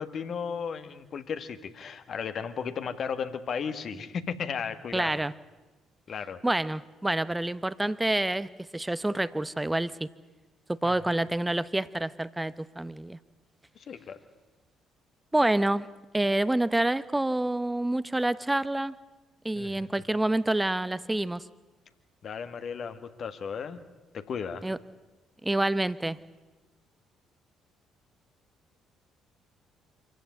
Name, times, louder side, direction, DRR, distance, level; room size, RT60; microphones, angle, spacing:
voice 1, 0.0-5.2 6.1-6.4 10.8-10.9 13.7-14.2 19.5-19.9 22.2-23.8 24.1-24.6, left 6 dB, 50° left, 9 dB, 1.7 m, -35 dB
voice 2, 4.9-5.3 6.4-10.1 10.7-13.2 15.3-15.9 16.1-18.9 19.4-21.4 24.6-24.8 25.4-26.2, right 1 dB, 10° right, 17 dB, 0.9 m, -27 dB
26.5 x 15.0 x 9.5 m, 1.2 s
figure-of-eight pair, 45°, 0 cm